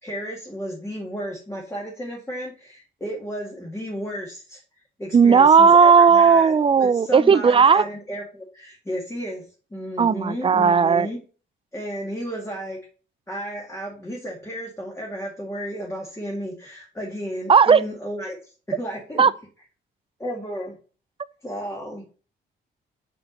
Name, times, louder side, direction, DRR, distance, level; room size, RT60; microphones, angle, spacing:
voice 1, 0.0-4.6 5.0-9.4 9.7-11.2 11.7-12.8 13.3-19.3 20.2-20.8 21.4-22.1, equal, 15° left, 2.0 m, -33 dB
voice 2, 5.1-7.8 10.0-11.1 17.5-17.8 19.2-19.3, right 6 dB, 25° right, 0.5 m, -15 dB
5.9 x 4.7 x 6.6 m
cardioid pair, 90°, 20 cm